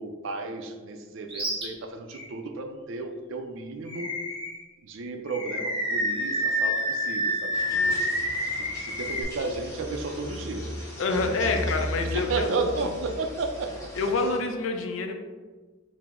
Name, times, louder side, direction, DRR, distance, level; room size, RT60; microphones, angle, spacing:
voice 1, 0.0-4.1 4.8-8.1 8.5-10.7 11.2-11.7 12.0-13.7, right 3 dB, 65° right, 5 dB, 0.4 m, -33 dB
Animal, 1.3-1.6 2.1-2.3 3.9-4.6 5.3-9.2, equal, 25° right, 0.9 m, -28 dB
sound 1, 7.5-14.4, equal, 15° left, 0.7 m, -37 dB
voice 2, 11.0-12.5 14.0-15.1, left 3 dB, 70° left, 5 dB, 0.5 m, -27 dB
4.7 x 2.1 x 3.6 m, 1.3 s
head